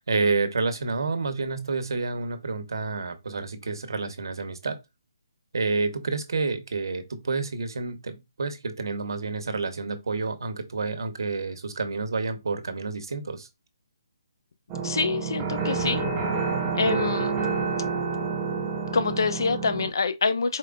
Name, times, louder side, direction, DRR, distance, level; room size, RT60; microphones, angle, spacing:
voice 1, 0.1-4.8 5.5-13.5, right 4 dB, 70° right, 1.0 m, -29 dB
sound 1, 14.7-19.9, right 4 dB, 15° right, 0.6 m, -28 dB
voice 2, 14.8-16.0 16.7-17.3 18.9-20.6, left 4 dB, 65° left, 0.7 m, -26 dB
4.6 x 3.6 x 2.2 m
hypercardioid pair, 170°, 2 cm